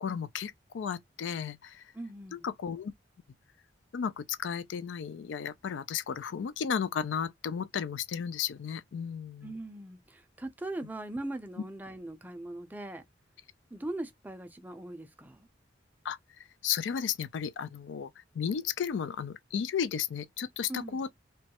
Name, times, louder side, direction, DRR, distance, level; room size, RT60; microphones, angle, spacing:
voice 1, 0.0-1.8 2.3-2.9 3.9-9.5 16.0-16.2 16.6-21.1, left 7 dB, 80° left, 0.4 m, -34 dB
voice 2, 1.9-2.5 9.4-13.0 13.7-15.4 20.7-21.0, right 1 dB, 10° right, 0.4 m, -40 dB
3.0 x 2.3 x 2.8 m
head